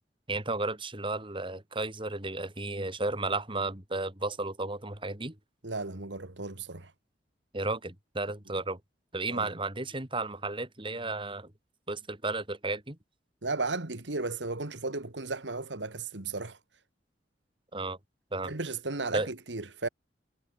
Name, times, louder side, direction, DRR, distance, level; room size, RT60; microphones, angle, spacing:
voice 1, 0.3-5.4 7.5-8.8 9.1-11.5 11.9-13.0 17.7-18.0 18.3-18.5 19.1-19.3, right 2 dB, 30° right, 4.1 m, -33 dB
voice 2, 5.6-6.9 9.3-9.5 13.4-16.6 18.4-19.9, right 3 dB, 90° right, 2.0 m, -35 dB
head